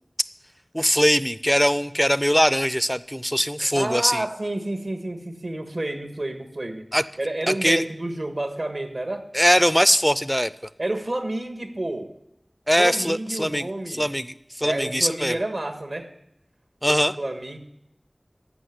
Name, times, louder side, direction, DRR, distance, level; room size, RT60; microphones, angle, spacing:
voice 1, 0.7-4.2 6.9-7.0 7.6-7.8 9.3-10.5 12.7-13.7 14.0-15.4 16.8-17.1, equal, 5° left, 16 dB, 0.4 m, -21 dB
voice 2, 3.6-6.9 7.2-9.2 10.8-12.1 12.8-14.1 14.6-16.1 16.9-17.6, right 1 dB, 70° right, 6 dB, 1.5 m, -29 dB
15.0 x 6.0 x 9.6 m, 0.81 s
wide cardioid pair, 50°, 0 cm